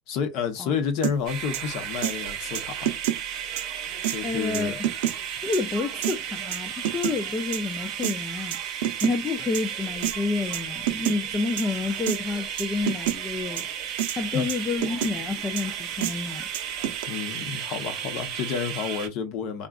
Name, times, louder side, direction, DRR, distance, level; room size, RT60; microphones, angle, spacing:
voice 1, 0.1-2.9 4.1-4.8 14.3-14.5 17.1-19.7, left 6 dB, 45° left, 0.8 m, -30 dB
sound 1, 1.0-1.2 1.5-1.6 2.0-2.1 2.5-3.2 3.6-3.7 4.0-4.2 4.5-5.2 5.5-5.6 6.0-6.2 6.5-7.2 7.5-7.6 8.0-8.1 8.5-9.2 9.5-9.6 10.0-10.2 10.5-10.6 10.9-11.2 11.6-11.7 12.1-12.2 12.6-13.2 13.6-13.7 14.0-14.2 14.5-15.1 15.6-15.7 16.0-16.1 16.5-17.0, right 11 dB, 80° right, 0.6 m, -27 dB
sound 2, 1.3-19.1, right 9 dB, 40° right, 0.7 m, -34 dB
voice 2, 4.2-4.8 5.4-16.5, left 3 dB, 15° left, 0.3 m, -29 dB
3.6 x 2.3 x 2.3 m
supercardioid pair, 170°, 0 cm